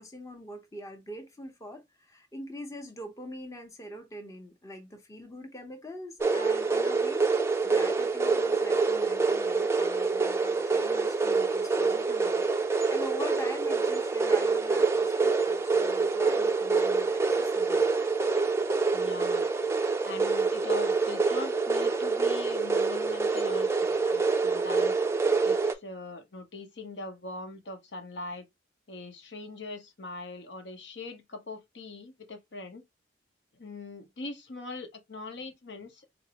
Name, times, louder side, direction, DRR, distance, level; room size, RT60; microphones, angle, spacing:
voice 1, 0.0-17.9, equal, 15° left, 0.7 m, -43 dB
sound 1, 6.2-25.7, right 4 dB, 15° right, 0.3 m, -26 dB
voice 2, 18.9-19.5 20.0-25.0 25.4-28.5 28.9-32.8 33.5-36.1, left 2 dB, 65° left, 0.8 m, -42 dB
4.0 x 2.5 x 2.8 m
head